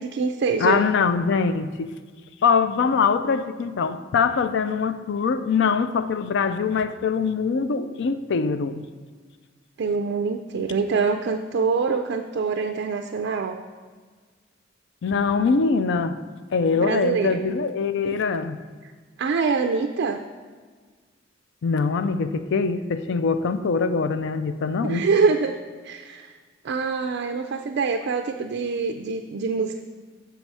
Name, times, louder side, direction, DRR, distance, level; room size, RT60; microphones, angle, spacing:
voice 1, 0.0-0.8 9.8-13.6 16.8-17.4 19.2-20.2 24.8-25.6 25.8-26.3 26.6-29.8, right 5 dB, 60° right, 5 dB, 0.4 m, -25 dB
voice 2, 0.6-1.9 2.4-8.8 15.0-16.2 16.5-18.6 21.6-25.1, left 5 dB, 65° left, 11 dB, 0.4 m, -23 dB
6.8 x 4.7 x 5.4 m, 1.5 s
head